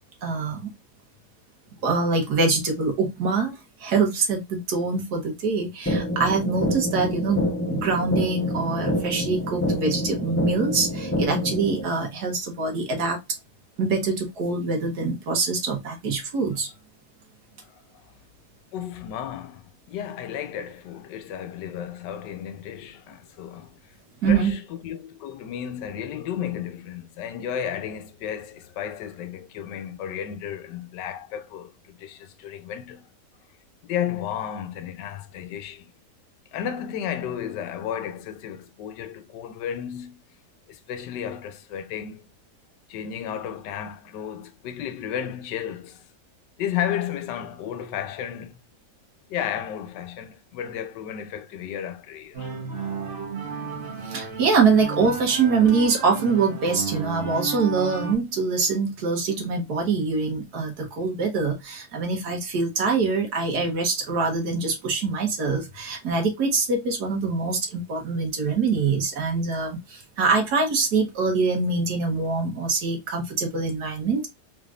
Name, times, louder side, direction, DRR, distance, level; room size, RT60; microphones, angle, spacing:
voice 1, 0.2-0.7 1.8-13.2 13.8-16.7 24.2-24.5 54.0-74.3, right 4 dB, 65° right, 1.6 m, -24 dB
sound 1, 5.9-11.9, equal, 15° left, 0.5 m, -27 dB
voice 2, 18.7-23.8 24.3-33.1 33.8-35.9 36.5-40.2 40.7-42.3 42.9-46.1 46.6-48.6 49.3-52.5, left 9 dB, 80° left, 1.3 m, -33 dB
sound 2, 52.3-58.1, right 5 dB, 45° right, 1.6 m, -33 dB
3.9 x 3.6 x 2.4 m
omnidirectional pair, 1.8 m